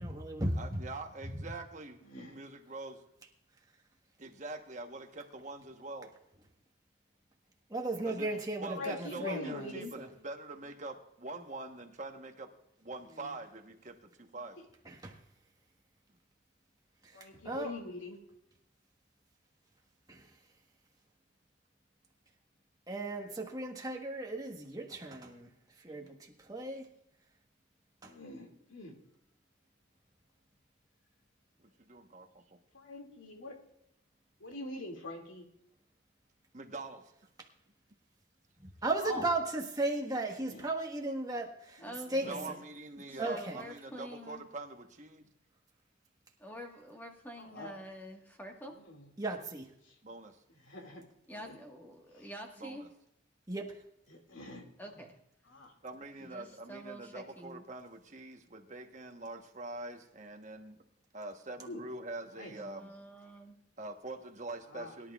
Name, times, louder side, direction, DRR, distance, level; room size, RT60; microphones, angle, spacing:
voice 1, 0.0-0.8 1.3-1.6 7.7-10.1 14.9-15.1 17.0-17.2 17.4-17.7 20.1-20.3 22.9-25.5 25.8-26.9 28.0-28.1 38.6-41.8 42.1-42.3 43.2-43.6 49.2-49.7 53.5-53.7, right 2 dB, 20° right, 1 dB, 1.3 m, -36 dB
voice 2, 0.6-3.0 4.2-6.1 8.0-8.3 8.6-12.5 12.8-14.6 31.8-32.4 36.5-37.1 42.2-45.3 50.0-50.3 52.6-52.9 55.8-60.8 61.1-62.9 63.8-65.1, right 2 dB, 35° right, 4 dB, 1.1 m, -44 dB
voice 3, 2.0-2.4 8.2-8.4 8.7-9.9 13.2-13.3 17.1-18.2 25.9-26.1 28.0-29.0 32.7-33.6 34.4-35.4 39.0-39.2 40.4-40.7 41.8-42.5 47.4-47.8 48.9-49.0 50.7-51.0 51.4-51.6 52.2-52.3 54.3-54.6 55.5-55.7 61.6-61.8 62.4-62.5 64.7-64.9, left 2 dB, 80° left, 2 dB, 2.3 m, -43 dB
voice 4, 41.8-42.6 43.1-44.4 46.4-48.8 51.3-52.9 54.8-55.2 56.2-57.6 62.5-63.6, equal, 10° left, 1 dB, 1.4 m, -47 dB
22.0 x 11.0 x 2.4 m, 0.78 s
head